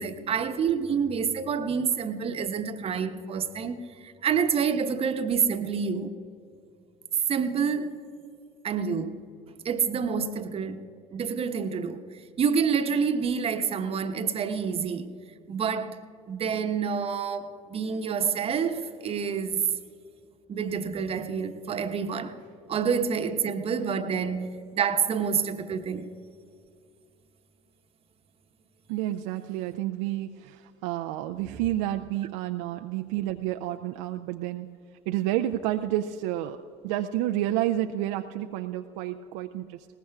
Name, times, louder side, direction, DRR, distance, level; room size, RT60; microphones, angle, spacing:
voice 1, 0.0-6.2 7.3-8.0 8.6-9.2 9.6-12.0 12.4-15.1 15.5-16.0 16.3-19.6 20.5-22.4 22.7-26.1 31.3-31.4, right 6 dB, 40° right, 1.0 m, -28 dB
voice 2, 28.9-34.7 35.1-36.6 36.8-39.9, right 13 dB, 65° right, 0.5 m, -30 dB
21.0 x 19.0 x 2.4 m
hypercardioid pair, 65°, 16 cm